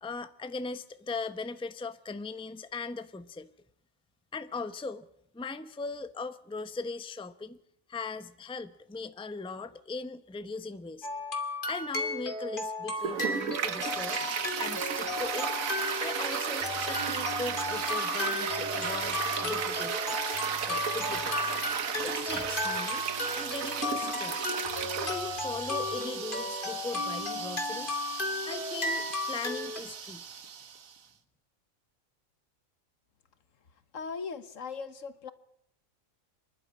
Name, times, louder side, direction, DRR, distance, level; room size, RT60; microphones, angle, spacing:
voice 1, 0.0-3.5 4.3-5.1 5.3-7.6 7.9-11.1 11.7-14.2 14.6-15.5 16.0-21.5 22.0-23.0 23.3-24.5 24.9-28.0 28.4-30.2, left 3 dB, 5° left, 11 dB, 0.7 m, -39 dB
sound 1, 11.0-29.8, left 2 dB, 35° left, 2.7 m, -35 dB
Toilet flush, 13.0-30.9, right 7 dB, 80° right, 1.6 m, -34 dB
sound 2, 16.6-17.9 18.5-19.8 20.3-21.8 22.3-24.2 24.6-26.0, equal, 40° right, 2.8 m, -50 dB
voice 2, 33.9-35.3, left 5 dB, 70° left, 13 dB, 1.5 m, -38 dB
26.0 x 11.5 x 9.7 m, 0.71 s
omnidirectional pair, 1.4 m